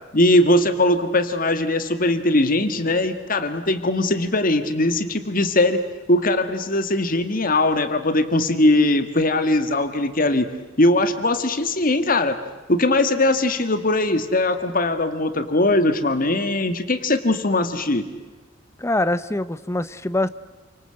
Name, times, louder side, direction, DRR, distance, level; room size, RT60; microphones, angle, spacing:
voice 1, 0.1-5.8 6.1-10.5 10.8-12.4 12.7-18.0, left 2 dB, 50° left, 9 dB, 1.8 m, -20 dB
voice 2, 18.8-20.3, left 2 dB, 15° left, 13 dB, 0.9 m, -23 dB
29.0 x 25.5 x 7.8 m, 1.3 s
head